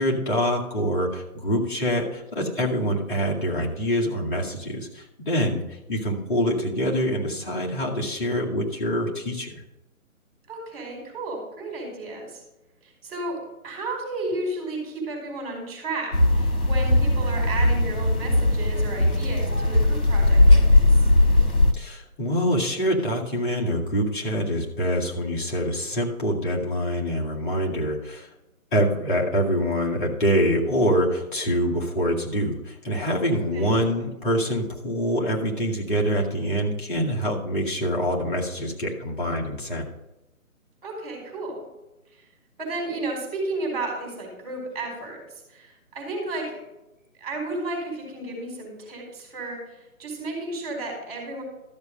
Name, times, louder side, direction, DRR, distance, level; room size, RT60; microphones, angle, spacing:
voice 1, 0.0-9.5 21.7-28.3 28.7-39.9, equal, 35° left, -2 dB, 2.2 m, -25 dB
voice 2, 10.5-12.4 12.8-21.1 33.5-33.7 40.8-41.6 42.1-42.2 42.6-46.6 47.2-51.4, right 2 dB, 25° right, 0 dB, 4.6 m, -33 dB
sound 1, 16.1-21.7, left 1 dB, 85° left, 1.6 m, -19 dB
13.0 x 6.9 x 5.2 m, 0.97 s
figure-of-eight pair, 150°, 43 cm